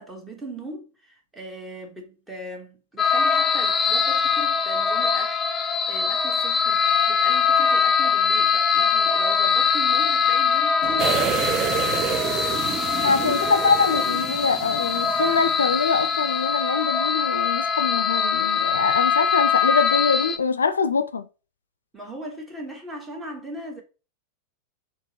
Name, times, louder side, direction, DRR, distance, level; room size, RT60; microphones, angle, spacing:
voice 1, 0.0-11.6 13.0-13.5 21.9-23.8, right 1 dB, 15° right, 1.3 m, -39 dB
sound 1, 3.0-20.4, left 6 dB, 20° left, 0.5 m, -22 dB
Boom, 10.8-14.1, right 4 dB, 65° right, 1.2 m, -39 dB
sound 2, 11.0-15.8 16.1-16.2, right 9 dB, 40° right, 0.4 m, -29 dB
voice 2, 13.0-21.3, left 5 dB, 85° left, 0.3 m, -24 dB
4.4 x 2.9 x 2.9 m
hypercardioid pair, 90°, 0 cm